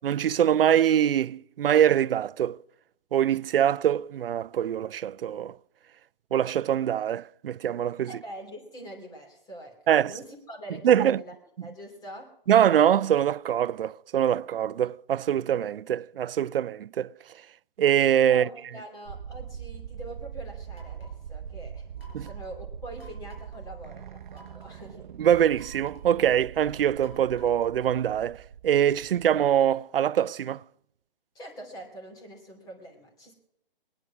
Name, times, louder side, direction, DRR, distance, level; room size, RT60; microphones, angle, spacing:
voice 1, 0.0-2.6 3.1-5.6 6.3-8.1 9.9-10.1 10.8-11.2 12.5-17.1 17.8-18.5 22.1-22.3 25.2-30.6, right 10 dB, 75° right, 0.5 m, -23 dB
voice 2, 8.1-11.4 11.6-12.3 18.3-25.1 31.3-33.3, right 1 dB, 10° left, 2.9 m, -44 dB
sound 1, 19.1-29.7, right 8 dB, 55° right, 0.8 m, -42 dB
sound 2, 20.7-21.2 22.0-22.5 23.0-23.6 24.3-24.8 25.5-26.2 27.0-27.8, equal, 85° left, 5.0 m, -53 dB
21.5 x 9.9 x 6.0 m
hypercardioid pair, 150°, 29 cm